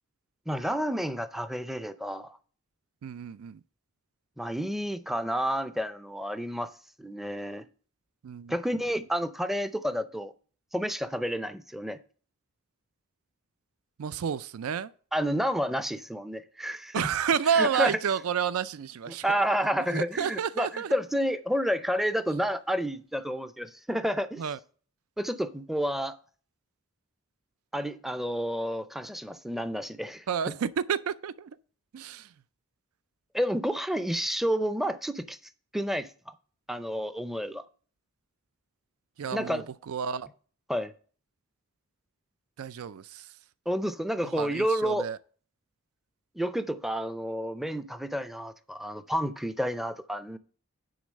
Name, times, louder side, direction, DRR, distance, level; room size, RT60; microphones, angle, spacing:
voice 1, 0.5-2.4 4.4-6.7 7.0-7.7 8.5-10.3 10.7-12.0 15.1-17.1 17.5-18.0 19.1-24.4 25.2-26.2 27.7-30.5 33.3-35.4 35.7-36.3 36.7-37.6 39.3-39.7 40.7-40.9 43.7-45.1 46.4-50.4, equal, ahead, 0.4 m, -30 dB
voice 2, 3.0-3.6 8.2-8.5 14.0-14.9 16.9-19.2 19.9-21.0 24.4-24.6 30.3-31.6 31.9-32.3 39.2-40.3 42.6-43.3 44.3-45.2, right 7 dB, 85° right, 0.4 m, -30 dB
9.5 x 3.9 x 6.5 m
head